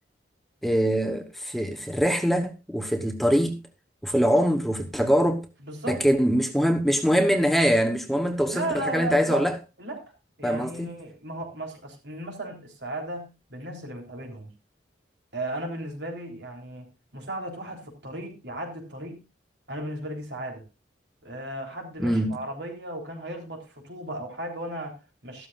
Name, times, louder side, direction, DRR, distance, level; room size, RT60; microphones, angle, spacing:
voice 1, 0.6-3.6 4.0-5.4 5.9-9.6 10.4-10.9 22.0-22.4, equal, ahead, 1.0 m, -23 dB
voice 2, 5.6-6.1 8.5-9.4 9.8-10.0 10.4-14.5 15.3-19.2 19.7-20.6 21.2-25.5, right 1 dB, 70° right, 3.6 m, -35 dB
13.5 x 13.0 x 2.5 m
head